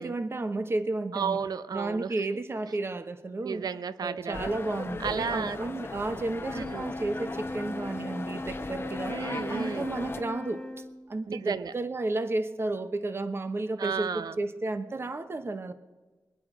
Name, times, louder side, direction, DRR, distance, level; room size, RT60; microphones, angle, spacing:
voice 1, 0.0-1.4 1.7-3.7 4.0-9.2 9.5-10.6 11.1-15.7, right 2 dB, 35° right, 10 dB, 0.9 m, -32 dB
voice 2, 1.1-2.3 3.4-4.5 5.0-5.6 6.5-6.9 9.1-9.9 11.3-11.7 13.8-14.4, right 6 dB, 70° right, 14 dB, 0.6 m, -33 dB
sound 1, 4.3-10.2, left 3 dB, 35° left, 0.8 m, -38 dB
Wind instrument woodwind instrument, 6.4-11.2, left 1 dB, 5° left, 1.0 m, -39 dB
21.5 x 10.5 x 4.9 m, 1.2 s
wide cardioid pair, 115°, 7 cm